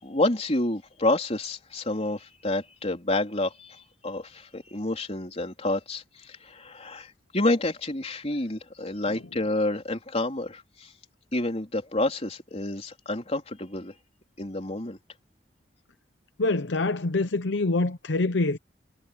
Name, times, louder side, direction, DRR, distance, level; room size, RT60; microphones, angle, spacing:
voice 1, 0.0-10.9 11.3-13.9 14.4-15.0, left 2 dB, 35° left, 3.7 m, -29 dB
voice 2, 16.4-18.6, left 2 dB, 75° left, 0.8 m, -25 dB
head